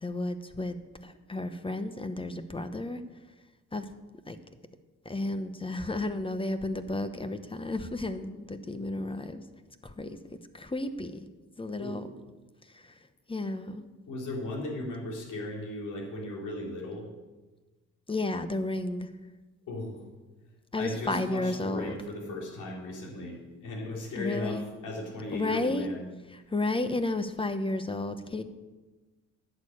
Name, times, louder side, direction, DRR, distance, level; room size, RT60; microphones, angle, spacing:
voice 1, 0.0-0.7 1.0-3.0 3.7-3.8 4.3-4.4 5.0-9.4 9.8-10.2 10.5-11.3 11.6-12.1 12.7-13.0 13.3-13.8 18.1-19.1 20.7-22.0 24.2-24.7 25.3-25.9 26.3-28.4, left 2 dB, 20° left, 10 dB, 0.9 m, -32 dB
voice 2, 14.1-17.1 19.7-20.0 20.8-26.1, left 2 dB, 80° left, -1 dB, 3.6 m, -37 dB
11.5 x 6.6 x 8.7 m, 1.2 s
cardioid pair, 90°, 30 cm